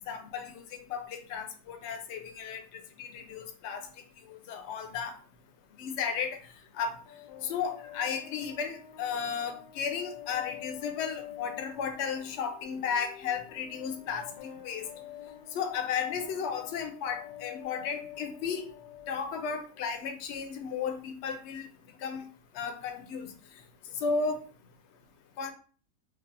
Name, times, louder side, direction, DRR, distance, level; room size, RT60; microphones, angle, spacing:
voice 1, 0.1-3.9 4.3-5.1 5.8-7.0 7.4-14.3 14.6-14.9 15.5-18.6 19.1-21.7 22.0-22.3 22.5-23.3 23.9-24.4 25.4-25.5, left 6 dB, 60° left, 6 dB, 0.8 m, -34 dB
sound 1, 7.1-20.1, left 10 dB, 80° left, 1.1 m, -48 dB
4.6 x 2.4 x 2.6 m, 0.39 s
omnidirectional pair, 1.7 m